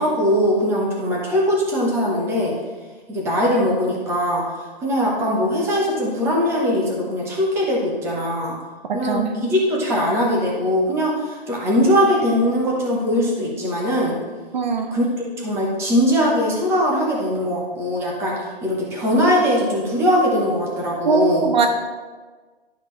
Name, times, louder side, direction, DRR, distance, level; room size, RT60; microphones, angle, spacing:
voice 1, 0.0-2.5 3.1-4.4 4.8-8.6 8.9-14.1 14.9-18.3 18.6-21.5, equal, 10° right, -3 dB, 0.9 m, -21 dB
voice 2, 8.9-9.3 14.5-14.9 21.1-21.7, right 4 dB, 50° right, 5 dB, 0.7 m, -20 dB
11.5 x 5.9 x 3.2 m, 1.4 s
hypercardioid pair, 160°, 30 cm